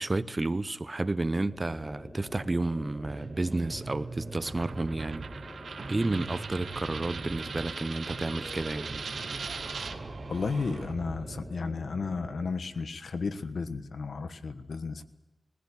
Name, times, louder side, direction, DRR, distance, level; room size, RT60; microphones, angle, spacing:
voice 1, 0.0-5.3 5.9-9.0, right 2 dB, 30° right, 0.8 m, -31 dB
sound 1, 1.5-12.5, equal, 20° left, 7.4 m, -46 dB
sound 2, 3.0-5.5 5.8-7.8 8.1-11.5, right 4 dB, 60° right, 0.8 m, -42 dB
Coin (dropping), 4.5-10.0, right 5 dB, 80° right, 1.5 m, -40 dB
voice 2, 10.3-15.0, left 4 dB, 75° left, 1.3 m, -33 dB
20.5 x 15.5 x 9.8 m
wide cardioid pair, 70°, 0 cm